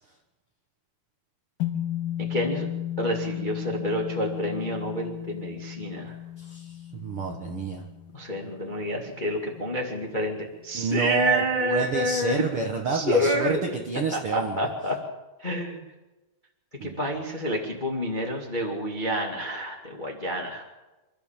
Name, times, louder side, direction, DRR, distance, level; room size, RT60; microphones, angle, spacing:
sound 1, 1.6-10.1, left 12 dB, 65° left, 3.3 m, -35 dB
voice 1, 2.2-2.7 3.0-6.1 8.1-12.4 12.9-13.7 14.1-15.0 15.4-15.8 16.8-20.6, equal, 20° left, 0 dB, 1.3 m, -28 dB
voice 2, 6.4-7.8 10.7-14.6 16.8-17.0, right 4 dB, 70° right, 3 dB, 1.3 m, -29 dB
28.0 x 13.0 x 7.4 m, 1.1 s
omnidirectional pair, 4.8 m